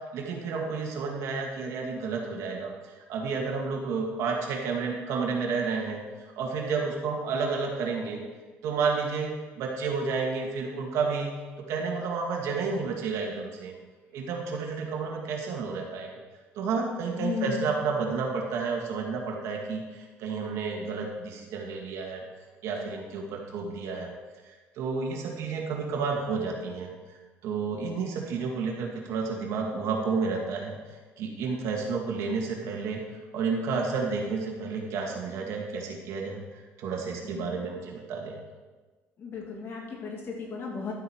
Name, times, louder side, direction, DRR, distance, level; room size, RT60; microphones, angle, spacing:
voice 1, 0.1-6.0 6.4-8.2 8.6-13.7 14.1-16.1 16.6-22.2 22.6-24.1 24.5-26.9 27.4-30.8 31.2-33.0 33.3-38.4, right 4 dB, 75° right, 0 dB, 2.2 m, -31 dB
voice 2, 17.1-17.6 37.2-37.5 39.2-40.9, left 5 dB, 50° left, -1 dB, 2.7 m, -35 dB
12.0 x 8.0 x 4.7 m, 1.3 s
cardioid pair, 110°, 5 cm